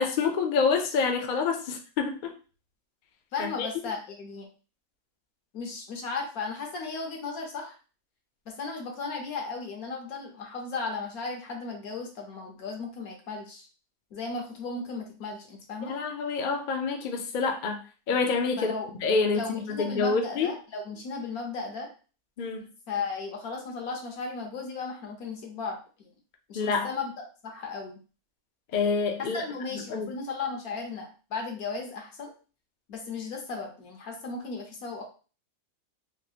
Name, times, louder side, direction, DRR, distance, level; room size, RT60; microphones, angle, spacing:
voice 1, 0.0-2.3 3.4-3.7 15.8-17.8 18.1-18.7 19.0-20.5 22.4-22.7 26.5-26.9 28.7-29.4 29.7-30.1, left 4 dB, 65° left, 3 dB, 0.4 m, -27 dB
voice 2, 3.3-4.5 5.5-7.8 8.5-13.7 14.1-15.9 18.6-18.9 19.3-21.9 22.9-26.1 26.5-27.1 27.4-28.0 29.2-32.3 32.9-35.0, left 4 dB, 85° left, 2 dB, 1.4 m, -35 dB
3.5 x 2.8 x 2.4 m, 0.35 s
omnidirectional pair, 1.5 m